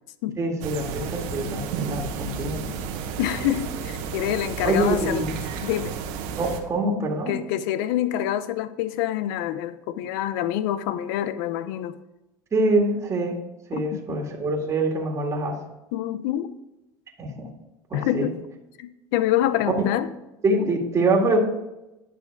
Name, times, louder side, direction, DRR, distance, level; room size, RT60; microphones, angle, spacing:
voice 1, 0.4-2.7 4.6-5.4 6.4-7.4 12.5-13.4 13.7-15.6 17.2-17.5 17.9-18.3 20.4-21.4, right 2 dB, 25° right, 2.0 m, -25 dB
sound 1, 0.6-6.6, right 6 dB, 70° right, 1.3 m, -32 dB
voice 2, 3.2-5.2 5.6-6.0 7.3-12.0 13.7-14.0 15.9-16.5 17.9-18.4 18.8-20.1, left 12 dB, 75° left, 0.7 m, -26 dB
10.5 x 5.9 x 4.7 m
supercardioid pair, 105°, 11 cm